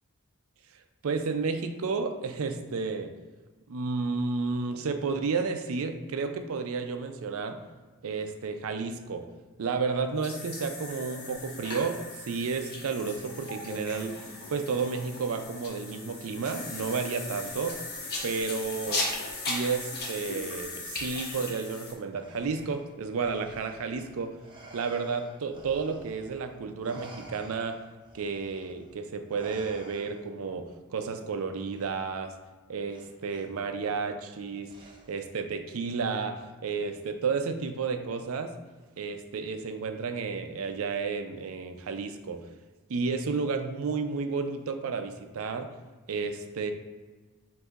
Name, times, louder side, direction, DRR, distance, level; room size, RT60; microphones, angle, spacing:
voice 1, 1.0-3.1 3.7-7.6 8.0-9.3 9.6-12.0 12.3-14.1 14.5-17.8 18.2-19.0 19.5-24.4 24.7-27.8 28.1-32.3 32.7-34.7 35.1-38.5 39.0-42.4 42.9-45.7 46.1-46.7, right 4 dB, 70° right, 7 dB, 0.4 m, -32 dB
sound 1, 10.2-21.9, left 2 dB, 50° left, 0.9 m, -37 dB
Respiratory sounds, 22.1-26.5 26.8-30.5 31.7-31.9 32.9-33.5 34.7-35.3, right 2 dB, 20° right, 0.6 m, -50 dB
7.9 x 2.7 x 2.4 m, 1.3 s
head